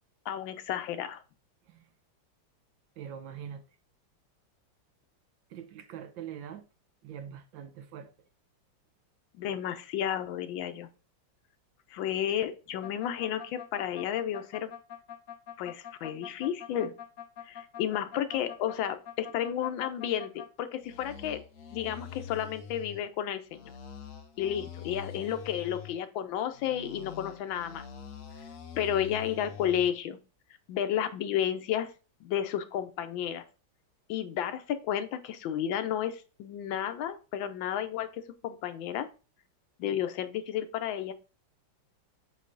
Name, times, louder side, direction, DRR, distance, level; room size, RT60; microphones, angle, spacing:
voice 1, 0.3-1.2 9.3-10.9 11.9-14.7 15.6-16.9 17.5-21.4 21.7-23.7 24.4-27.8 28.8-30.2 30.7-31.9 32.2-33.4 34.1-39.1 39.8-41.1, left 10 dB, 85° left, 1.4 m, -32 dB
voice 2, 3.0-3.6 5.5-6.6 7.0-8.1, right 9 dB, 80° right, 1.5 m, -43 dB
sound 1, 12.8-20.5 20.8-23.0 23.5-26.0 26.5-29.9, left 8 dB, 55° left, 0.9 m, -45 dB
7.6 x 3.2 x 3.9 m
omnidirectional pair, 2.1 m